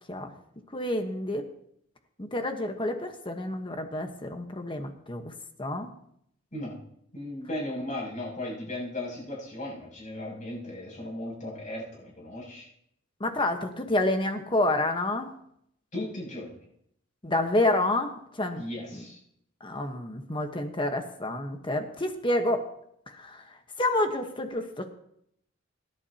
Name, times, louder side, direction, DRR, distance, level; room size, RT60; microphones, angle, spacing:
voice 1, 0.7-1.4 2.2-5.3 5.6-5.9 13.2-15.3 17.2-18.6 18.9-19.0 19.6-22.6 23.1-24.9, left 1 dB, 25° left, 5 dB, 1.2 m, -29 dB
voice 2, 7.1-12.7 15.9-16.5 18.6-19.2, left 1 dB, 40° left, -3 dB, 7.2 m, -36 dB
26.0 x 11.0 x 2.9 m, 0.71 s
head